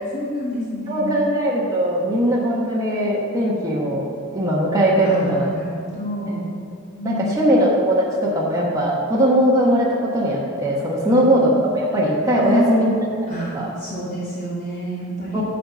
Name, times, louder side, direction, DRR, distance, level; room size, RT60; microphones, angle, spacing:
voice 1, 0.1-1.2 5.0-6.5 7.0-7.6 11.0-11.3 12.4-12.9 13.3-15.4, equal, 35° left, -13 dB, 2.3 m, -27 dB
voice 2, 0.9-4.0 4.3-5.5 7.0-9.9 10.1-13.0 13.5-13.7 15.3-15.4, equal, 15° right, -5 dB, 1.1 m, -19 dB
11.0 x 4.1 x 6.1 m, 2.4 s
head